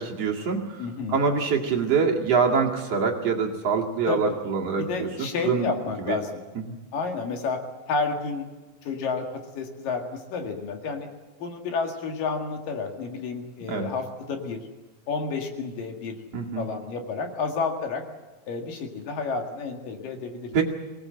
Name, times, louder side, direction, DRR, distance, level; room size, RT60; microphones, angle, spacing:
voice 1, 0.0-0.8 1.1-5.7 6.1-6.2 13.7-13.9 16.3-16.7 20.5-20.6, right 5 dB, 50° right, -1 dB, 2.9 m, -25 dB
voice 2, 0.8-1.2 4.1-4.4 4.8-6.4 6.9-7.6 7.9-8.5 8.8-9.3 9.6-11.1 11.4-14.6 15.1-16.2 16.6-18.0 18.5-20.6, left 4 dB, 75° left, 4 dB, 3.7 m, -30 dB
24.0 x 18.5 x 7.8 m, 1.2 s
omnidirectional pair, 4.0 m